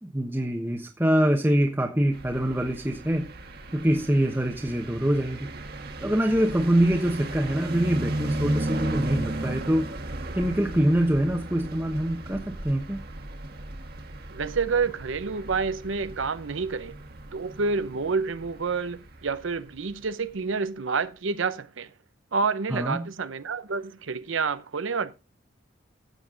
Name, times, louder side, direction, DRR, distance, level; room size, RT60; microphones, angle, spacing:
voice 1, 0.0-3.3 3.7-5.5 6.0-9.9 10.3-13.0 22.7-23.1, right 1 dB, 10° right, 1.1 m, -24 dB
sound 1, 2.1-20.1, right 1 dB, 50° right, 1.6 m, -35 dB
voice 2, 14.3-17.0 17.3-21.9 22.3-25.1, right 4 dB, 75° right, 0.7 m, -28 dB
15.0 x 8.1 x 3.8 m
head